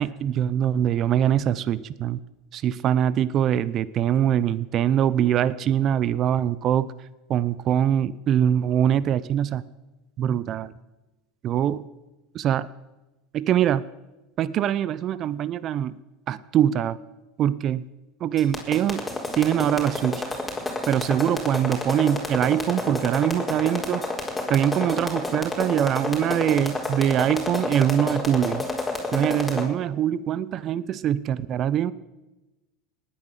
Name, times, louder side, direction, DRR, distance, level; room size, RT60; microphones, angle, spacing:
voice 1, 0.0-2.2 2.5-6.9 7.3-9.6 10.2-10.7 11.4-11.8 12.3-12.7 13.3-13.8 14.4-15.9 16.3-17.0 17.4-17.8 18.2-19.1 19.3-20.2 20.9-24.0 24.5-28.6 29.1-31.9, right 10 dB, 45° right, 18 dB, 0.7 m, -23 dB
sound 1, 18.4-29.6, left 2 dB, 10° left, 4.5 m, -29 dB
19.0 x 9.9 x 7.5 m, 1.1 s
hypercardioid pair, 95°, 0 cm